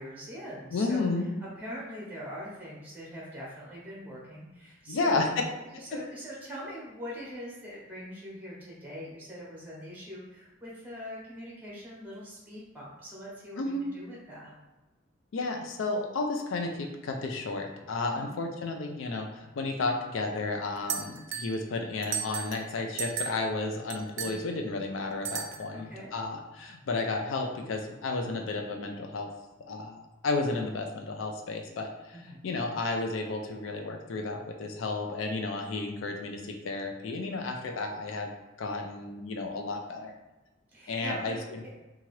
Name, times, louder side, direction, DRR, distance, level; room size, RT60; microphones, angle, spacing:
voice 1, 0.0-1.1 1.6-5.4 5.7-14.5 18.1-18.3 25.8-26.1 32.1-32.5 40.7-41.4, equal, 10° right, -5 dB, 0.7 m, -42 dB
voice 2, 0.7-1.4 4.9-5.3 5.7-5.9 13.6-13.9 15.3-29.3 29.6-32.2 32.4-38.3 38.6-40.2 40.9-41.6, left 3 dB, 75° left, 3 dB, 0.4 m, -32 dB
sound 1, 20.9-21.6 22.0-22.7 23.0-23.5 23.9-24.4 25.3-25.8, right 8 dB, 65° right, 0.4 m, -35 dB
2.8 x 2.4 x 3.0 m, 1.1 s
head